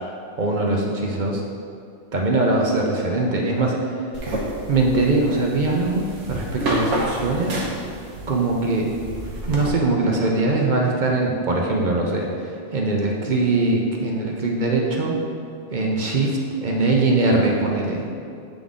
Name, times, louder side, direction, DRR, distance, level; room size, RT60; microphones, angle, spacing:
voice 1, 0.4-1.4 2.1-3.7 4.7-7.6 8.3-8.9 9.5-15.2 15.7-18.0, right 2 dB, 50° right, -1 dB, 0.7 m, -21 dB
sound 1, 4.1-9.7, right 1 dB, 80° right, 1.2 m, -29 dB
8.0 x 3.9 x 3.6 m, 2.5 s
omnidirectional pair, 1.2 m